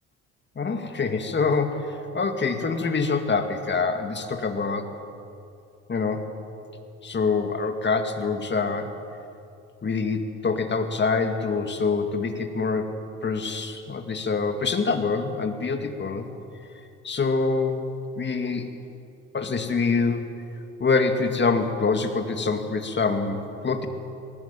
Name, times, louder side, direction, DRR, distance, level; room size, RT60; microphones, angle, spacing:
voice 1, 0.6-4.9 5.9-6.3 7.0-8.9 9.8-16.3 17.0-17.8 18.2-18.7 19.3-20.3 20.8-23.9, left 4 dB, 35° left, 6 dB, 2.2 m, -25 dB
20.0 x 16.5 x 9.1 m, 2.6 s
cardioid pair, 90°, 30 cm